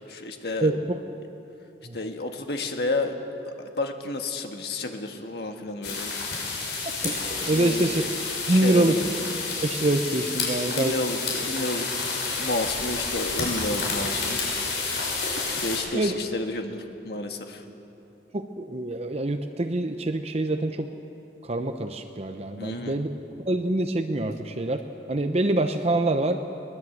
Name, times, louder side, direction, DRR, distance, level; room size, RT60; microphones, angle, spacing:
voice 1, 0.1-0.7 1.9-3.2 3.5-6.1 7.5-7.9 8.5-9.1 10.5-11.9 12.4-14.4 15.6-17.6 22.6-23.0, left 2 dB, 65° left, 4 dB, 1.7 m, -31 dB
voice 2, 0.6-1.0 1.9-2.0 7.0-8.0 8.5-9.0 9.6-10.9 15.9-16.1 18.3-20.9 21.5-23.1 23.5-24.8 25.1-26.4, right 1 dB, 35° right, 6 dB, 0.8 m, -25 dB
sound 1, 5.8-15.8, left 4 dB, 80° left, 6.1 m, -30 dB
21.5 x 20.0 x 8.0 m, 2.9 s
head